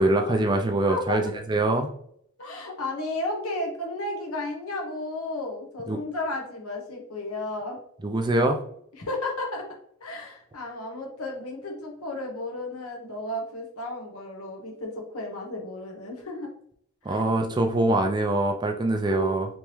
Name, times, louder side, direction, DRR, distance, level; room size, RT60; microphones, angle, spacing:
voice 1, 0.0-1.9 5.9-6.0 8.0-8.6 17.0-19.5, right 2 dB, 20° right, 4 dB, 0.4 m, -24 dB
voice 2, 0.9-1.2 2.4-7.8 9.0-9.7 10.0-16.5 17.1-17.2 19.0-19.3, left 2 dB, 85° left, 1 dB, 1.1 m, -33 dB
3.5 x 3.1 x 3.0 m, 0.66 s
head